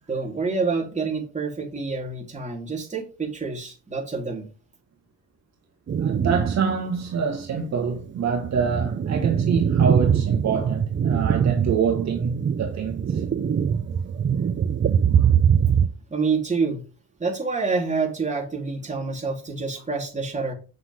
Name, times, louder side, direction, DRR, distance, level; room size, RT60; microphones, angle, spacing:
voice 1, 0.1-4.5 16.1-16.8 17.2-20.5, right 4 dB, 25° right, 3.8 m, -27 dB
sound 1, 5.9-6.8 7.2-7.3 8.0-15.9, right 8 dB, 40° right, 0.8 m, -22 dB
voice 2, 6.0-13.2 15.0-15.1, right 6 dB, 65° right, 1.8 m, -26 dB
8.1 x 6.8 x 3.7 m
cardioid pair, 90°, 30 cm